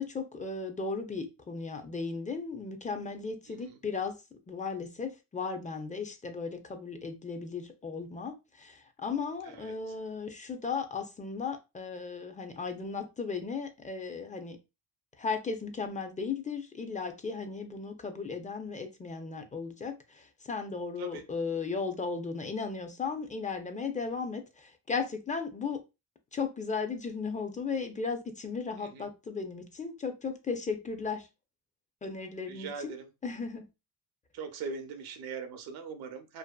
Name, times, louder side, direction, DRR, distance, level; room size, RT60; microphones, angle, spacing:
voice 1, 0.0-4.2 4.5-14.6 15.2-25.8 26.3-31.3 32.0-32.9 33.2-33.7, left 5 dB, 20° left, 0.5 m, -36 dB
voice 2, 3.5-3.8 9.4-10.0 21.0-21.3 28.8-29.1 32.5-33.1 34.3-36.4, right 5 dB, 75° right, 0.7 m, -41 dB
2.6 x 2.5 x 2.2 m
cardioid pair, 95°, 37 cm